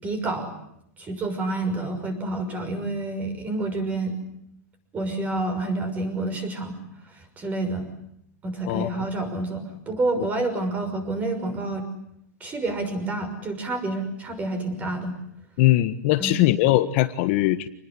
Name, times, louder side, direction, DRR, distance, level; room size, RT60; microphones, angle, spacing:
voice 1, 0.0-0.5 1.0-4.2 4.9-6.8 7.1-7.9 8.4-11.8 12.4-15.2 16.2-16.4, right 2 dB, 15° right, 8 dB, 6.1 m, -28 dB
voice 2, 8.7-9.1 15.6-17.7, left 16 dB, 45° left, 9 dB, 1.4 m, -21 dB
27.5 x 20.5 x 10.0 m, 0.75 s
supercardioid pair, 155°, 9 cm